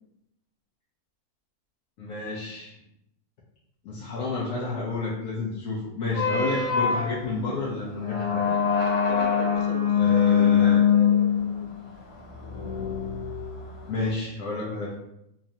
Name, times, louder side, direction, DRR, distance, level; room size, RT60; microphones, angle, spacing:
voice 1, 2.0-2.8 3.8-8.6 10.0-10.9 13.9-14.9, left 3 dB, 65° left, -5 dB, 1.1 m, -30 dB
sound 1, 6.1-13.9, left 7 dB, 90° left, 1.5 m, -23 dB
voice 2, 9.1-11.7, right 4 dB, 60° right, 2 dB, 0.9 m, -39 dB
3.9 x 3.2 x 2.7 m, 0.81 s
omnidirectional pair, 1.6 m